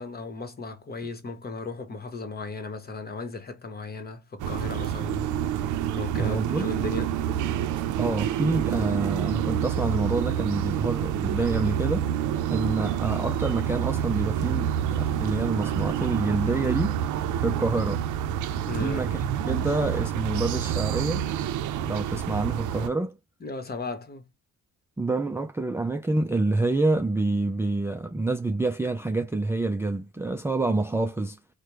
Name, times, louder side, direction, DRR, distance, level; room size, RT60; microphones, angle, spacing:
voice 1, 0.0-7.1 18.6-19.0 23.4-24.3, left 3 dB, 30° left, 1.0 m, -36 dB
sound 1, 4.4-22.9, right 10 dB, 80° right, 0.5 m, -28 dB
voice 2, 6.1-6.7 8.0-12.1 12.5-17.0 17.4-18.0 18.8-21.2 21.9-23.1 25.0-31.4, right 2 dB, 10° right, 0.4 m, -27 dB
3.4 x 2.1 x 2.8 m
cardioid pair, 90°, 30 cm